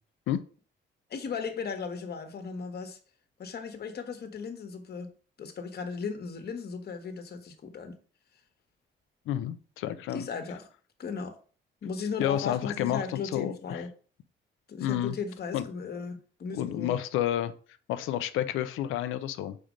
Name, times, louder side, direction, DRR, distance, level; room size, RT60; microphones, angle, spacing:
voice 1, 1.1-3.0 3.4-5.1 5.4-7.9 10.1-10.7 11.0-11.4 11.8-13.9 14.7-16.9, left 5 dB, 55° left, 8 dB, 1.2 m, -36 dB
voice 2, 9.3-10.2 12.2-13.8 14.8-15.2 15.5-15.6 16.5-17.5 17.9-19.6, left 11 dB, 90° left, 12 dB, 0.6 m, -30 dB
5.1 x 4.3 x 5.1 m, 0.42 s
cardioid pair, 90°, 20 cm